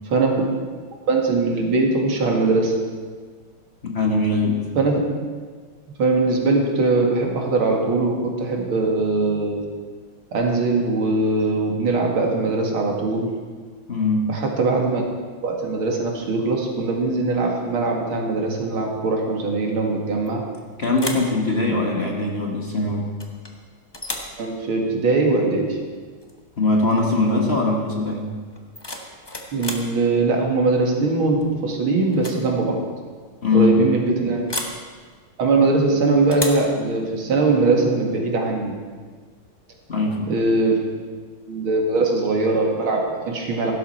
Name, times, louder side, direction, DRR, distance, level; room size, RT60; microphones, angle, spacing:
voice 1, 0.1-0.5 1.1-2.8 4.8-5.0 6.0-9.7 10.3-13.3 14.3-15.0 15.4-20.4 21.7-21.8 24.4-25.8 29.5-32.8 33.5-34.4 35.4-38.7 40.3-40.9 41.5-43.7, right 3 dB, 80° right, 1 dB, 2.8 m, -21 dB
voice 2, 3.8-4.6 13.9-14.3 20.8-23.1 26.6-28.3 33.4-33.7 39.9-40.3, left 2 dB, 35° left, 0 dB, 1.5 m, -21 dB
sound 1, 20.3-20.6 20.9-21.4 23.2-23.6 23.9-24.4 26.2-26.4 26.7-27.1 28.5-29.9 31.4-31.7 32.1-32.4 32.7-32.8 34.5-34.8 36.3-36.7, left 1 dB, 15° left, 0.9 m, -32 dB
16.0 x 12.5 x 4.4 m, 1.5 s
omnidirectional pair, 2.3 m